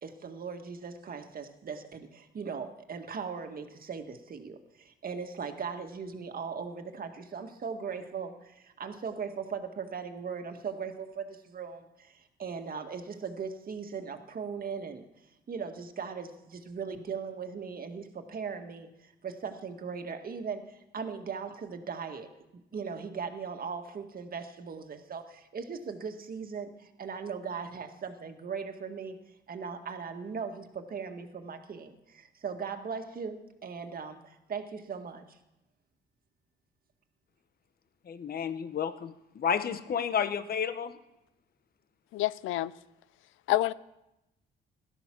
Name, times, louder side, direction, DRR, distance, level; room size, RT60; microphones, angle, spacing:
voice 1, 0.0-15.1 15.5-35.4, right 6 dB, 45° right, 1.9 m, -39 dB
voice 2, 38.1-40.9, left 7 dB, 50° left, 1.1 m, -31 dB
voice 3, 42.1-42.7 43.5-43.7, left 15 dB, 85° left, 0.6 m, -27 dB
17.0 x 12.5 x 6.1 m
cardioid pair, 90°, 20 cm